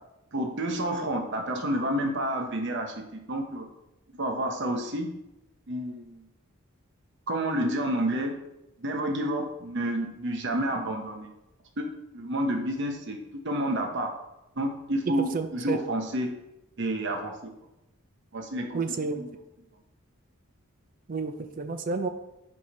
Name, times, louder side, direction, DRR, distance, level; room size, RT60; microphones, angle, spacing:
voice 1, 0.3-3.7 4.2-5.1 5.7-6.2 7.3-8.4 8.8-11.3 11.8-13.2 13.4-14.1 14.6-16.4 16.8-17.3 18.3-18.8 19.1-19.3, right 1 dB, 55° right, 4 dB, 0.9 m, -29 dB
voice 2, 15.3-15.8 18.7-19.2 21.1-22.1, right 4 dB, 40° right, 9 dB, 0.5 m, -30 dB
4.8 x 4.4 x 5.4 m, 0.91 s
head